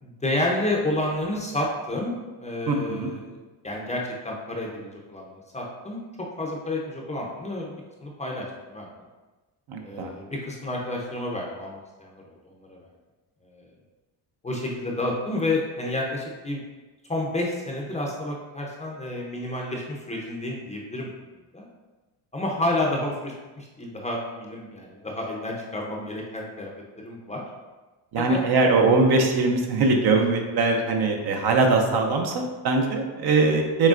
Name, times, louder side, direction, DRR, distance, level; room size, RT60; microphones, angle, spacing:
voice 1, 0.0-2.1 2.4-3.4 3.6-8.9 9.8-12.8 13.4-13.6 14.4-16.6 17.1-21.1 21.5-21.7 22.3-26.7 27.0-27.4 28.2-28.4, left 1 dB, 15° left, -2 dB, 0.6 m, -30 dB
voice 2, 2.7-3.1 9.7-10.1 28.1-33.9, right 3 dB, 50° right, 2 dB, 0.8 m, -21 dB
6.3 x 3.3 x 2.5 m, 1.2 s
cardioid pair, 110°, 48 cm